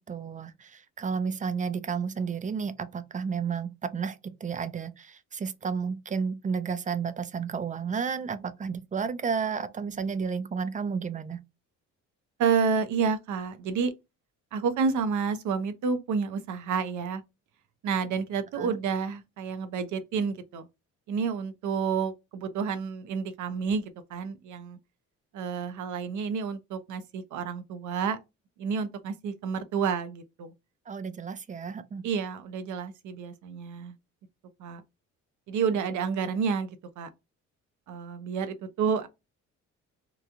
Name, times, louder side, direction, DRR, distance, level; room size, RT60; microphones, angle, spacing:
voice 1, 0.1-11.4 18.6-18.8 30.9-32.0, right 6 dB, 25° right, 0.4 m, -32 dB
voice 2, 12.4-13.9 14.5-17.2 17.8-20.7 21.1-24.8 25.3-28.2 28.6-30.5 32.0-33.9 34.6-34.8 35.5-36.7 37.0-37.1 37.9-39.1, right 6 dB, 75° right, 0.6 m, -29 dB
3.0 x 2.3 x 2.5 m
cardioid pair, 90°, 30 cm